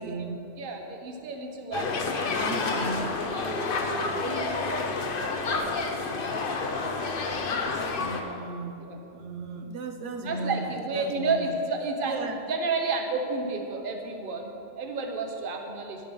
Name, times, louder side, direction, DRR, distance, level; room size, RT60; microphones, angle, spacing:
voice 1, 0.0-0.4 2.4-3.1 8.0-8.8 9.1-11.6 12.1-12.4, right 3 dB, 80° right, 5 dB, 1.2 m, -35 dB
voice 2, 0.6-2.7 3.3-6.0 8.8-9.0 10.2-12.1 12.5-16.1, right 3 dB, 50° right, 3 dB, 1.1 m, -32 dB
sound 1, 1.7-8.2, left 4 dB, 55° left, 0.9 m, -29 dB
11.0 x 8.2 x 5.3 m, 2.7 s
omnidirectional pair, 1.2 m